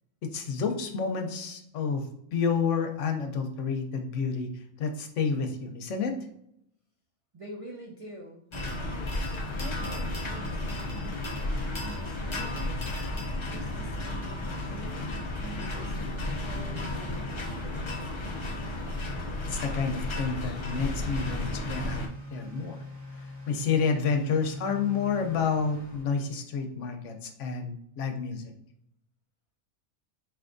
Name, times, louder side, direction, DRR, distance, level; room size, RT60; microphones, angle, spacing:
voice 1, 0.2-6.2 19.5-22.8 23.2-28.5, left 5 dB, 65° left, 5 dB, 1.0 m, -30 dB
voice 2, 7.3-8.4 8.9-12.9 13.5-18.0, right 1 dB, 60° right, -1 dB, 0.3 m, -46 dB
sound 1, 8.5-22.1, left 1 dB, 45° left, 0.3 m, -33 dB
Motor vehicle (road) / Accelerating revving vroom, 13.9-26.0, left 1 dB, 5° right, 1.5 m, -46 dB
4.6 x 3.4 x 2.5 m, 0.74 s
omnidirectional pair, 1.4 m